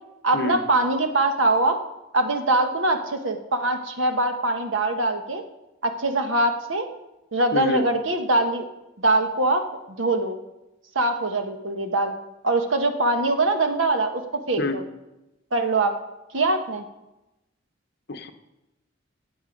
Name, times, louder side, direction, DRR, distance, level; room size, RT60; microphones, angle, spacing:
voice 1, 0.2-1.8 2.1-5.4 5.8-6.9 7.3-8.6 9.0-9.6 10.0-10.4 10.9-12.1 12.4-14.2 14.5-14.8 15.5-15.9 16.3-16.8, right 2 dB, 80° right, 6 dB, 1.3 m, -22 dB
voice 2, 7.5-7.8 14.6-14.8 18.1-18.3, left 2 dB, 55° left, 7 dB, 1.0 m, -26 dB
17.0 x 7.8 x 5.2 m, 0.98 s
head